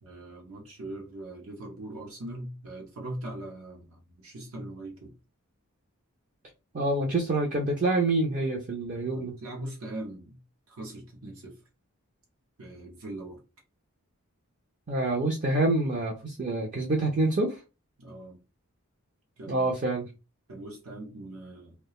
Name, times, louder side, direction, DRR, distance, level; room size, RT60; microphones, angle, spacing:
voice 1, 0.0-5.1 9.1-10.4 10.7-11.6 12.6-13.4 18.0-18.4 19.4-19.7 20.5-21.7, right 1 dB, 75° right, 0.7 m, -41 dB
voice 2, 6.7-9.3 14.9-17.6 19.5-20.1, right 2 dB, 35° right, 0.5 m, -27 dB
2.4 x 2.2 x 2.9 m
head